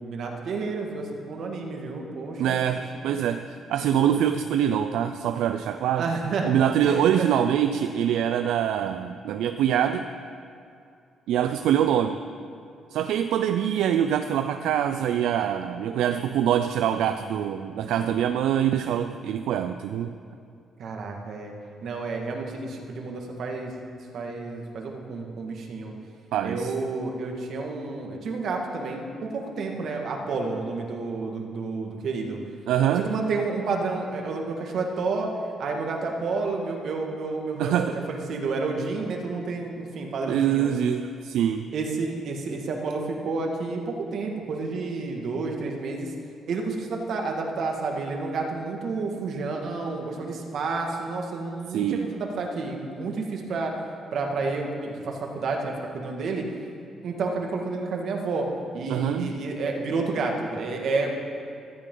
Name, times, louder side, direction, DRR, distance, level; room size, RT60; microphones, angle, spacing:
voice 1, 0.0-2.8 3.1-3.2 4.4-4.5 5.9-6.5 6.8-7.3 20.8-21.5 21.8-23.7 24.1-25.9 26.4-32.4 32.9-35.3 35.6-40.7 41.7-46.1 46.5-53.7 54.1-56.5 57.0-58.5 58.7-61.1, right 3 dB, 65° right, 1 dB, 2.0 m, -30 dB
voice 2, 2.4-6.1 6.4-10.1 11.3-12.2 12.9-20.2 26.3-26.7 32.7-33.1 37.6-38.0 40.3-41.7 51.7-52.1 58.9-59.3, right 9 dB, 85° right, 9 dB, 0.4 m, -24 dB
14.5 x 13.5 x 3.9 m, 2.4 s
cardioid pair, 90°, 0 cm